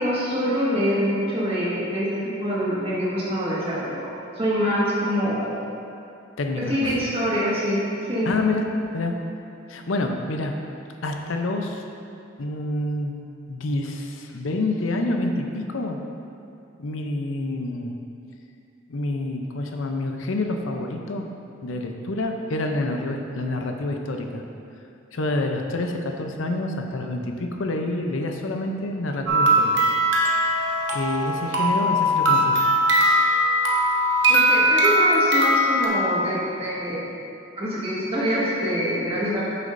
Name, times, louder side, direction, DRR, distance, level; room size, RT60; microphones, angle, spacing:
voice 1, 0.0-4.1 4.3-5.5 6.7-8.3 34.3-37.0 37.5-39.4, equal, 30° right, -8 dB, 1.7 m, -25 dB
voice 2, 6.4-6.9 8.3-8.6 8.9-9.1 9.7-10.5 11.0-11.8 12.4-13.1 13.5-16.0 16.8-18.0 18.9-21.2 21.6-24.4 25.1-29.8 30.9-32.6, left 2 dB, 85° left, 3 dB, 0.6 m, -27 dB
sound 1, 29.3-35.9, equal, 65° right, 0.9 m, -20 dB
9.2 x 6.5 x 2.6 m, 2.6 s
head